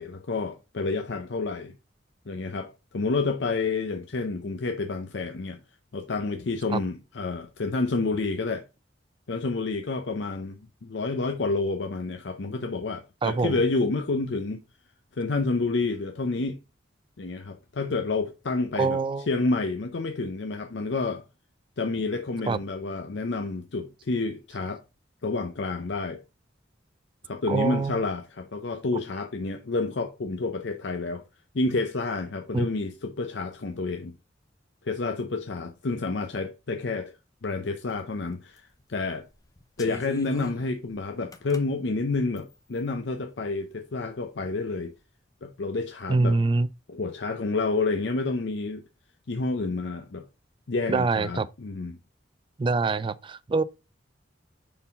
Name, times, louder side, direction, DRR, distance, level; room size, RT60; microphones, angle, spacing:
voice 1, 0.0-1.7 2.3-5.6 5.9-8.6 9.3-14.6 15.2-16.6 17.2-19.0 19.3-21.2 21.8-24.8 25.2-26.2 27.2-31.2 31.5-34.1 34.8-37.1 37.4-39.3 39.8-44.9 45.4-46.3 46.9-48.8 49.3-50.2 50.7-51.9, left 3 dB, 70° left, 0.6 m, -29 dB
voice 2, 13.2-13.6 18.8-19.3 22.5-22.6 27.5-28.0 32.5-32.7 46.1-46.7 50.9-51.5 52.6-53.6, right 3 dB, 25° right, 0.3 m, -25 dB
sound 1, 38.0-38.1 38.6-38.8 39.3-41.6 42.4-42.9, left 1 dB, 20° left, 0.6 m, -41 dB
5.5 x 4.6 x 4.0 m
head